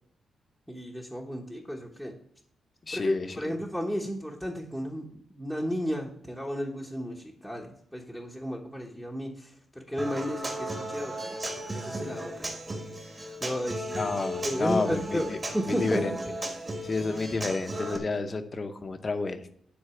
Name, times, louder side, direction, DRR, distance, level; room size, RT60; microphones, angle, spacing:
voice 1, 0.7-2.2 2.9-12.5 13.4-14.2 14.4-16.0, equal, ahead, -2 dB, 1.0 m, -33 dB
voice 2, 2.9-3.5 14.0-15.4 15.7-16.1 16.8-19.5, left 3 dB, 35° left, 8 dB, 0.8 m, -30 dB
Human voice / Acoustic guitar, 10.0-18.0, right 1 dB, 25° right, 1.6 m, -35 dB
9.8 x 4.0 x 6.9 m, 0.64 s
cardioid pair, 120°, 0 cm